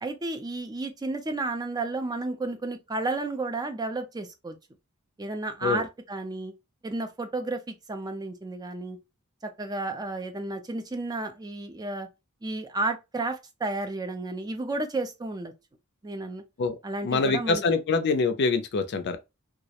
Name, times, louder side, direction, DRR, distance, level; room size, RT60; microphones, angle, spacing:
voice 1, 0.0-4.6 5.2-6.5 6.8-9.0 9.6-12.1 12.4-15.5 16.0-16.4 16.8-17.6, right 2 dB, 20° right, 0.4 m, -32 dB
voice 2, 17.0-19.2, left 4 dB, 55° left, 0.4 m, -25 dB
2.3 x 2.0 x 2.7 m
head